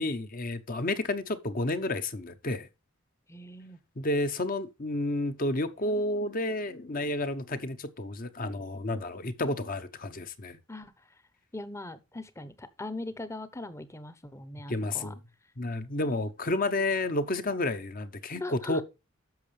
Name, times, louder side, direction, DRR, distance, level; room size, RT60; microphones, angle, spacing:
voice 1, 0.0-2.7 4.0-10.6 14.7-15.2 15.6-18.8, left 2 dB, 40° left, 0.9 m, -31 dB
voice 2, 3.3-3.8 10.7-11.2 11.5-15.1 18.4-18.8, left 2 dB, 15° left, 0.8 m, -40 dB
10.5 x 6.6 x 3.3 m
head